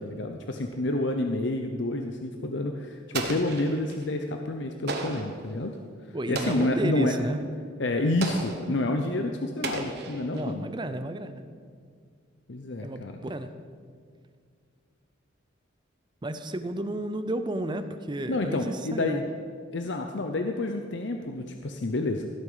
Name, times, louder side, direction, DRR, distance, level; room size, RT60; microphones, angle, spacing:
voice 1, 0.0-5.8 6.3-7.2 7.8-10.6 12.5-13.2 18.3-19.2 19.7-22.3, left 2 dB, 60° left, 4 dB, 0.7 m, -29 dB
Explosion, 3.1-4.0 4.9-5.4 6.3-6.9 8.2-8.7 9.6-10.5, right 3 dB, 55° right, 1.3 m, -34 dB
voice 2, 6.1-7.4 10.3-11.4 12.8-13.5 16.2-19.2, right 1 dB, 25° right, 10 dB, 0.6 m, -32 dB
16.5 x 8.0 x 5.6 m, 2.1 s
head